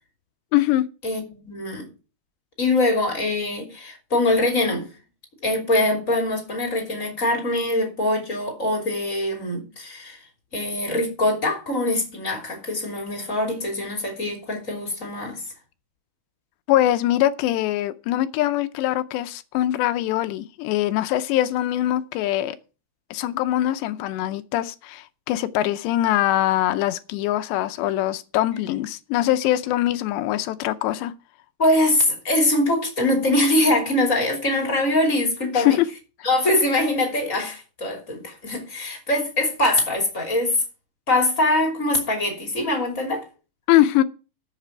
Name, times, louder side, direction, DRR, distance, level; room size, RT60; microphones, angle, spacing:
voice 1, 0.5-0.9 16.7-22.6 23.1-31.1 35.5-35.8 43.7-44.0, left 14 dB, 80° left, 2.7 m, -22 dB
voice 2, 1.0-1.9 2.6-4.9 5.4-10.2 10.5-15.4 31.6-35.8 36.2-40.6 41.1-43.3, left 1 dB, 20° left, 2.3 m, -23 dB
11.5 x 7.5 x 5.8 m
omnidirectional pair, 5.3 m